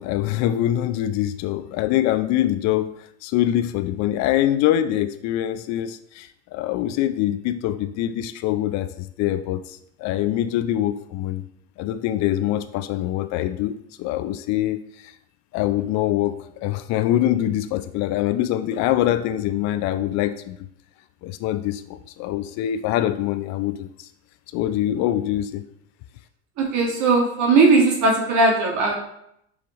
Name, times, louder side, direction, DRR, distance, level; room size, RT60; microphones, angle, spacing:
voice 1, 0.0-2.9 3.2-11.4 11.8-15.1 15.5-20.6 21.2-24.1 24.5-25.6, left 13 dB, 55° left, 10 dB, 0.5 m, -24 dB
voice 2, 26.6-28.9, right 3 dB, 55° right, -1 dB, 2.0 m, -18 dB
6.7 x 4.9 x 3.0 m, 0.74 s
hypercardioid pair, 80°, 34 cm